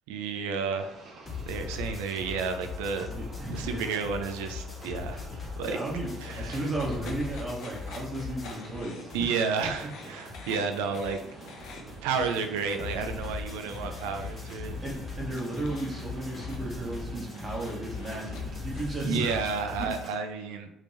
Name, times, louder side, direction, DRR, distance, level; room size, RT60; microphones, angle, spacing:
voice 1, 0.1-1.0 1.5-3.1 3.5-5.2 5.6-5.8 6.2-6.7 9.1-11.2 12.0-14.8 19.0-20.7, right 5 dB, 80° right, 6 dB, 0.4 m, -31 dB
sound 1, 0.7-19.6, right 3 dB, 60° right, 0.8 m, -47 dB
sound 2, 1.3-8.8 9.1-20.1, left 5 dB, 25° left, 1.2 m, -40 dB
voice 2, 3.1-3.9 5.1-5.3 5.6-9.9 14.8-19.5 19.8-19.9, right 2 dB, 35° right, -3 dB, 1.3 m, -35 dB
sound 3, 6.0-19.6, left 3 dB, 70° left, 0.6 m, -49 dB
3.3 x 2.7 x 3.2 m, 0.83 s
hypercardioid pair, 60°, 0 cm